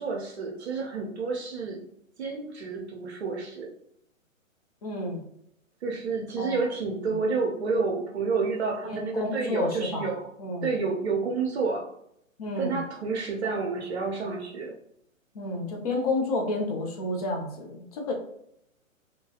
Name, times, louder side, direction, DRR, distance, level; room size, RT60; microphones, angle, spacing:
voice 1, 0.0-1.8 2.2-3.7 5.8-10.3 10.6-11.9 12.6-14.8, right 4 dB, 55° right, -1 dB, 0.6 m, -29 dB
voice 2, 4.8-5.2 6.4-6.7 7.1-7.2 8.8-10.1 10.4-10.7 12.4-12.8 15.3-18.1, left 2 dB, 30° left, 1 dB, 0.5 m, -30 dB
2.8 x 2.2 x 2.7 m, 0.74 s
figure-of-eight pair, 125°, 41 cm